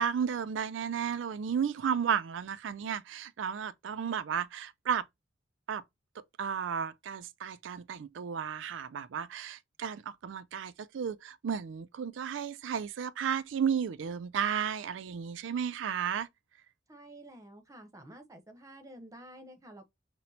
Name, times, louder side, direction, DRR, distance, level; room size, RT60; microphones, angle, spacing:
voice 1, 0.0-5.1 5.7-5.8 6.2-16.3, right 7 dB, 75° right, 0.4 m, -33 dB
voice 2, 16.9-19.9, right 1 dB, 20° right, 0.8 m, -50 dB
5.8 x 2.1 x 2.7 m
head